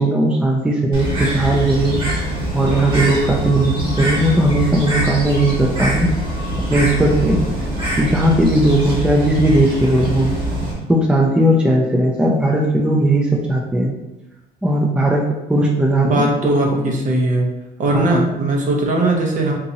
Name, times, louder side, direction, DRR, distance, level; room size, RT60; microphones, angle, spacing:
voice 1, 0.0-2.0 2.5-6.1 6.7-7.4 8.0-10.3 10.9-13.9 14.6-15.2 15.5-16.9 17.9-18.3, right 1 dB, 5° right, -1 dB, 0.4 m, -17 dB
Bird, 0.9-10.7, right 1 dB, 30° right, 1.3 m, -23 dB
voice 2, 16.0-17.5 17.8-19.5, right 2 dB, 50° right, 1 dB, 0.8 m, -18 dB
3.8 x 2.8 x 2.7 m, 0.99 s
cardioid pair, 110°, 17 cm